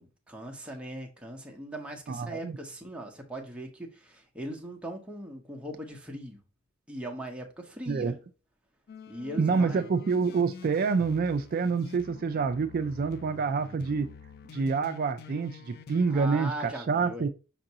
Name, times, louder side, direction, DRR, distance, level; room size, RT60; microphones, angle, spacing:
voice 1, 0.0-6.4 6.9-8.1 9.1-9.9 16.1-17.2, right 1 dB, 5° right, 0.7 m, -40 dB
voice 2, 2.1-2.6 7.9-8.1 9.4-14.1 14.5-17.3, right 5 dB, 45° right, 0.3 m, -27 dB
sound 1, 8.9-16.3, left 6 dB, 45° left, 0.3 m, -48 dB
5.3 x 2.6 x 2.7 m
head